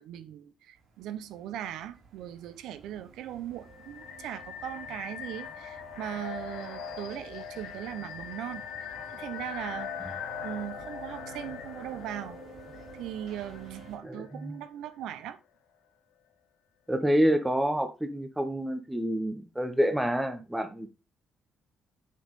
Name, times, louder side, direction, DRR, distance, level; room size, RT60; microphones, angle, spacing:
voice 1, 0.0-12.4 12.9-15.4, right 11 dB, 90° right, 0.8 m, -39 dB
sound 1, 0.8-14.0, right 4 dB, 60° right, 3.6 m, -51 dB
sound 2, 3.6-14.4, left 8 dB, 80° left, 1.0 m, -41 dB
voice 2, 14.0-14.6 16.9-20.9, equal, 5° right, 1.0 m, -28 dB
6.8 x 6.4 x 3.7 m
cardioid pair, 155°, 0 cm